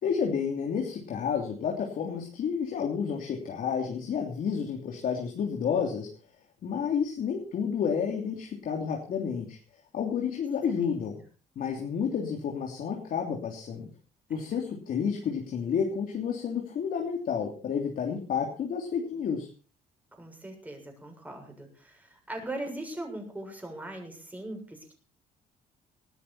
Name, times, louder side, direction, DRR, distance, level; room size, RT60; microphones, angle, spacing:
voice 1, 0.0-6.1 6.6-9.6 9.9-11.1 11.5-13.9 14.3-19.5, left 7 dB, 55° left, 1 dB, 3.2 m, -30 dB
voice 2, 14.3-14.6 20.2-24.9, right 1 dB, 10° right, 2 dB, 7.1 m, -40 dB
19.5 x 13.0 x 4.3 m, 0.38 s
cardioid pair, 110°, 17 cm